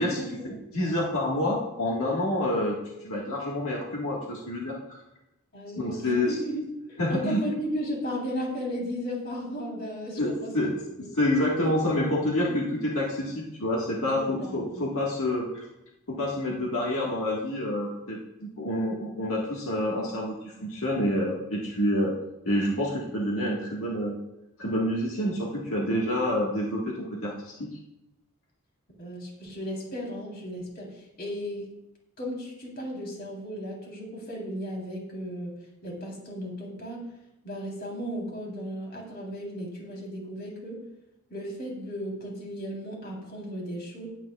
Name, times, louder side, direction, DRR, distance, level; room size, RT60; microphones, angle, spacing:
voice 1, 0.0-2.8 3.0-4.8 5.8-6.3 7.0-7.4 10.2-10.3 10.5-10.7 11.1-15.7 16.1-22.2 22.4-24.1 24.6-27.7, left 1 dB, 80° left, -4 dB, 1.7 m, -28 dB
voice 2, 5.5-6.6 6.9-10.7 11.0-11.1 11.6-11.7 12.5-12.7 14.1-14.9 29.0-31.7 32.2-35.5 35.8-37.1 37.4-40.8 41.3-44.1, equal, 45° left, -2 dB, 3.6 m, -35 dB
18.5 x 9.1 x 2.4 m, 0.89 s
head